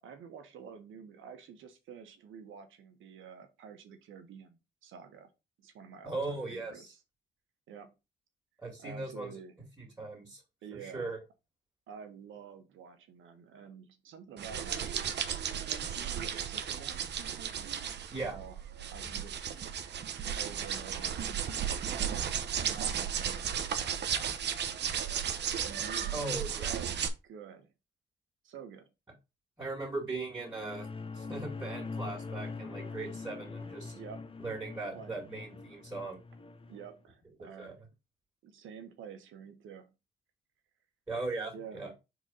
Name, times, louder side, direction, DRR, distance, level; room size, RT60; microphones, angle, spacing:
voice 1, 0.0-5.3 5.6-7.0 7.7-7.9 8.8-9.5 10.6-11.1 11.9-15.0 15.6-17.0 18.2-18.6 18.9-19.5 20.4-21.4 21.8-24.3 25.6-27.7 28.4-28.9 33.9-34.3 34.9-35.2 36.7-37.8 38.4-39.9 41.5-41.8, right 7 dB, 80° right, 6 dB, 1.5 m, -49 dB
voice 2, 6.0-6.9 8.6-9.3 9.8-10.4 10.7-11.2 18.1-18.4 26.1-26.8 29.6-30.9 31.1-33.9 34.4-36.2 37.4-37.7 41.1-41.9, right 3 dB, 15° right, -3 dB, 2.8 m, -38 dB
sound 1, 14.4-27.1, right 8 dB, 60° right, 1.0 m, -34 dB
sound 2, 30.2-36.9, left 4 dB, 25° left, 1.0 m, -43 dB
4.8 x 3.9 x 5.6 m, 0.26 s
cardioid pair, 90°, 20 cm